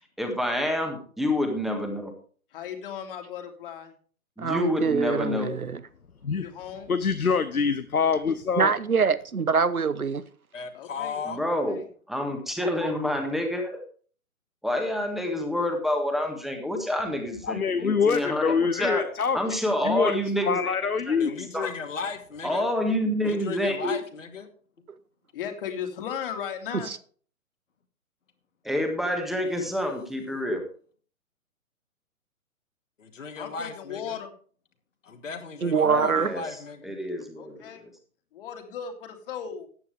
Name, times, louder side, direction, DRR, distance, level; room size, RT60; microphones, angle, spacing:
voice 1, 0.2-2.1 4.4-5.5 11.2-11.8 12.1-13.8 14.6-19.1 19.3-20.8 21.1-21.2 21.5-21.7 22.4-23.9 28.6-30.6 35.8-36.4 36.8-37.9, left 1 dB, ahead, 1.6 m, -28 dB
voice 2, 2.5-3.9 6.4-6.9 10.7-11.8 25.3-26.9 33.4-34.3 37.4-37.9 38.3-39.7, left 8 dB, 40° left, 2.4 m, -36 dB
voice 3, 4.4-5.8 8.6-10.2 24.9-25.0 26.7-27.0 35.6-36.3, right 5 dB, 85° right, 1.0 m, -24 dB
voice 4, 6.9-8.7 17.5-19.4 19.8-20.1 20.5-21.5, left 5 dB, 80° left, 1.0 m, -25 dB
voice 5, 10.5-11.4 21.1-22.7 23.2-24.5 33.0-34.2 35.0-37.0, left 5 dB, 60° left, 2.4 m, -36 dB
14.5 x 9.4 x 3.4 m
figure-of-eight pair, 130°, 42 cm